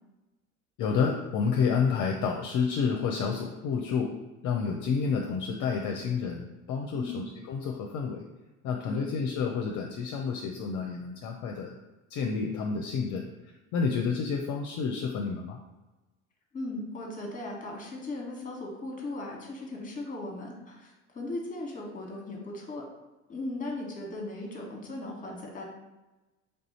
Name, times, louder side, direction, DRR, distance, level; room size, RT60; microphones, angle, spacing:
voice 1, 0.8-4.1 4.4-8.3 8.6-11.8 12.1-13.3 13.7-15.6, left 5 dB, 50° left, 2 dB, 0.5 m, -29 dB
voice 2, 6.9-7.2 8.9-9.1 16.5-22.8 23.3-25.6, left 2 dB, 20° left, -1 dB, 1.3 m, -37 dB
3.4 x 2.7 x 4.1 m, 1.1 s
hypercardioid pair, 70°, 41 cm